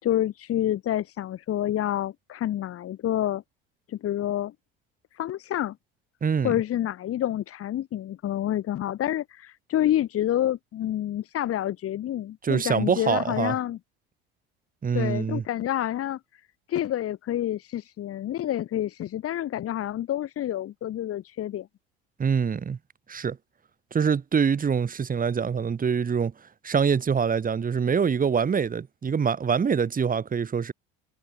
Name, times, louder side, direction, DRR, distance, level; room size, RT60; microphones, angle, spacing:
voice 1, 0.0-3.4 3.9-4.5 5.1-5.8 6.4-13.8 14.9-16.2 16.7-21.7, left 12 dB, 50° left, 5.4 m, -28 dB
voice 2, 6.2-6.6 12.4-13.6 14.8-15.4 22.2-22.8 23.1-23.4 23.9-26.3 26.6-30.7, right 6 dB, 30° right, 2.3 m, -24 dB
hypercardioid pair, 70°, 29 cm